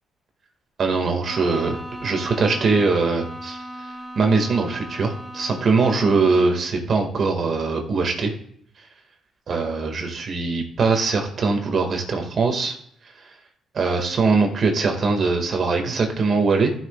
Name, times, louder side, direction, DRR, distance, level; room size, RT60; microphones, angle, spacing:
voice 1, 0.8-3.6 4.2-8.3 9.5-12.8 13.7-16.7, right 4 dB, 50° right, 3 dB, 1.8 m, -21 dB
Bowed string instrument, 1.2-6.7, equal, 5° right, 1.7 m, -37 dB
14.5 x 6.1 x 2.3 m, 0.68 s
cardioid pair, 90°, 0 cm